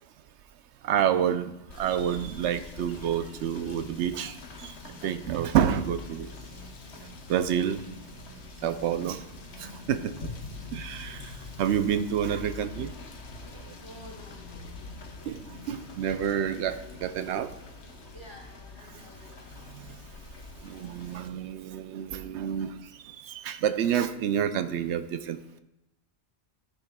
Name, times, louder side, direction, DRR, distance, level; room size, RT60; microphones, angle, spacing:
voice 1, 0.8-1.5 1.8-4.7 5.0-6.3 7.3-7.8 8.6-9.2 9.6-10.3 10.7-11.3 11.6-12.9 15.3-17.5 19.7-20.0 20.6-22.7 23.0-25.6, right 9 dB, 80° right, 10 dB, 0.9 m, -28 dB
Rain / Motor vehicle (road), 1.7-21.3, left 4 dB, 70° left, 1.2 m, -44 dB
sound 1, 4.8-10.7, right 4 dB, 45° right, 1.4 m, -52 dB
voice 2, 13.8-14.7 18.1-19.8, right 1 dB, 25° left, -6 dB, 3.5 m, -51 dB
14.0 x 9.9 x 2.3 m, 0.93 s
omnidirectional pair, 1.2 m